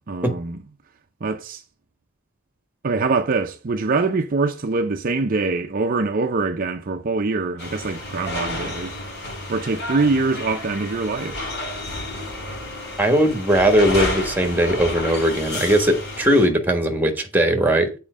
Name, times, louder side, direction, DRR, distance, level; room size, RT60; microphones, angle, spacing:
voice 1, 0.1-0.6 1.2-1.6 2.8-8.9 9.5-11.4, right 3 dB, 40° right, 0.5 m, -23 dB
sound 1, 7.6-16.5, left 1 dB, 50° left, 4.7 m, -31 dB
voice 2, 13.0-17.9, right 1 dB, 10° right, 1.3 m, -19 dB
7.3 x 4.5 x 6.1 m
head